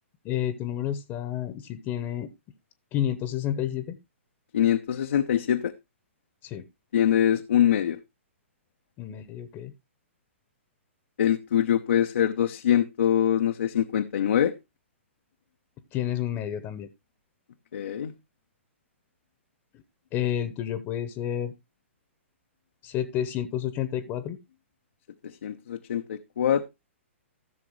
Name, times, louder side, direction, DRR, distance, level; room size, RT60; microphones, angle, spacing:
voice 1, 0.2-2.3 2.9-4.0 6.4-6.6 9.0-9.7 15.9-16.9 20.1-21.5 22.8-24.4, left 11 dB, 30° left, 1.0 m, -30 dB
voice 2, 4.5-5.7 6.9-8.0 11.2-14.5 17.7-18.1 25.4-26.7, left 10 dB, 65° left, 0.8 m, -24 dB
15.0 x 6.8 x 3.1 m
hypercardioid pair, 120°, 7 cm